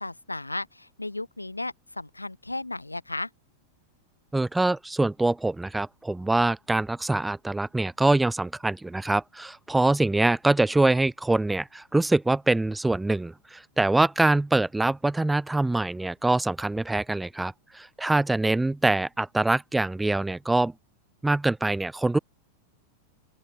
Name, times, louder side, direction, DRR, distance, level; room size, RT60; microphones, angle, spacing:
voice 1, 0.0-3.3, left 2 dB, 85° left, 2.1 m, -34 dB
voice 2, 4.3-20.7 21.2-22.2, right 2 dB, 5° right, 2.0 m, -24 dB
open air
figure-of-eight pair, 90°, 0 cm